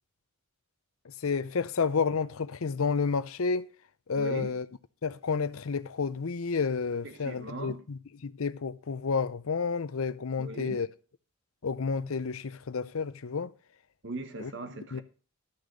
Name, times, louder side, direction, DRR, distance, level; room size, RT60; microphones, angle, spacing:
voice 1, 1.0-3.7 4.1-4.7 5.0-10.9 11.6-13.5 14.4-14.5 14.9-15.0, left 5 dB, 70° left, 0.6 m, -30 dB
voice 2, 4.2-4.5 7.0-7.8 10.4-10.8 14.0-15.0, right 2 dB, 55° right, 1.2 m, -39 dB
13.0 x 6.6 x 5.1 m
head